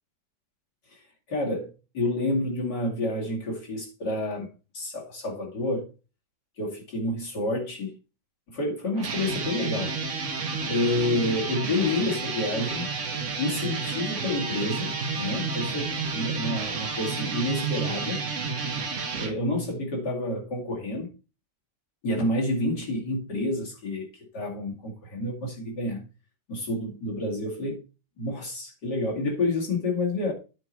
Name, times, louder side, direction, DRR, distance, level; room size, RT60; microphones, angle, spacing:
voice 1, 1.3-5.9 6.6-7.9 8.5-9.9 10.7-12.9 13.4-18.2 19.2-21.1 22.0-24.1 24.3-26.1 26.5-27.8 28.2-30.3, left 2 dB, 75° left, 3.1 m, -29 dB
sound 1, 8.9-19.3, right 4 dB, 45° right, 1.4 m, -31 dB
9.7 x 4.9 x 4.6 m
omnidirectional pair, 1.9 m